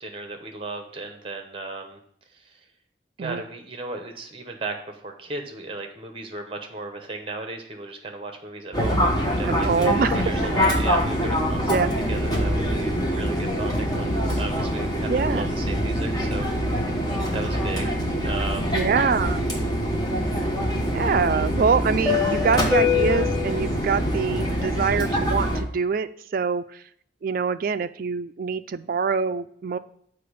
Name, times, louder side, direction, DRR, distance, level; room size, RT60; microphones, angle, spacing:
voice 1, 0.0-2.0 2.3-2.6 3.2-11.6 12.1-16.5 17.3-17.9 18.2-18.8, right 3 dB, 30° right, 4 dB, 0.9 m, -35 dB
Fixed-wing aircraft airplane, 8.7-25.6, left 1 dB, 20° left, 1.1 m, -24 dB
voice 2, 9.5-10.2 11.7-11.9 15.1-15.5 18.7-19.5 20.9-26.8 27.2-29.8, right 5 dB, 45° right, 10 dB, 0.3 m, -25 dB
6.8 x 4.6 x 5.0 m, 0.67 s
head